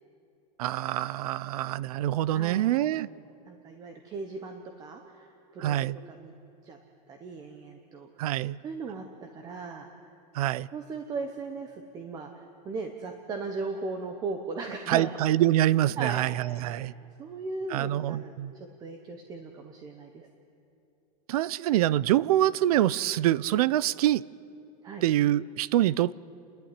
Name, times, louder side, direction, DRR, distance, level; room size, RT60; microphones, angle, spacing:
voice 1, 0.6-3.1 5.6-6.0 8.2-8.6 10.3-10.7 14.9-16.9 17.7-18.5 21.3-24.2 25.0-26.1, right 13 dB, 65° right, 21 dB, 0.5 m, -25 dB
voice 2, 2.3-2.7 3.5-6.3 6.6-6.8 7.1-9.0 9.3-9.9 10.7-15.1 16.0-16.3 16.7-16.9 17.2-20.3 24.8-25.0, right 4 dB, 20° right, 5 dB, 0.9 m, -38 dB
29.5 x 12.0 x 9.6 m, 2.7 s
supercardioid pair, 175°, 21 cm